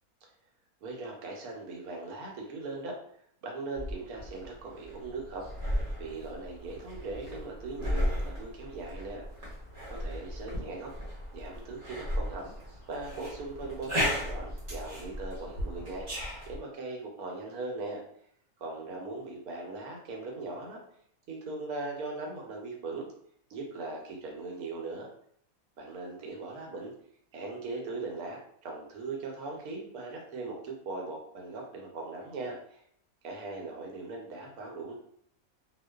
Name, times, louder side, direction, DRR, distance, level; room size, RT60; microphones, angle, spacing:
voice 1, 0.8-2.9 3.4-5.5 6.0-9.2 9.9-10.9 11.3-12.5 12.9-16.1 16.5-18.0 18.6-20.8 21.3-23.1 23.5-25.1 25.8-26.9 27.3-32.8 33.2-34.9, right 3 dB, 80° right, 0 dB, 1.1 m, -39 dB
sound 1, 3.8-16.6, equal, 40° right, 0.9 m, -36 dB
2.4 x 2.2 x 2.2 m, 0.66 s
omnidirectional pair, 1.5 m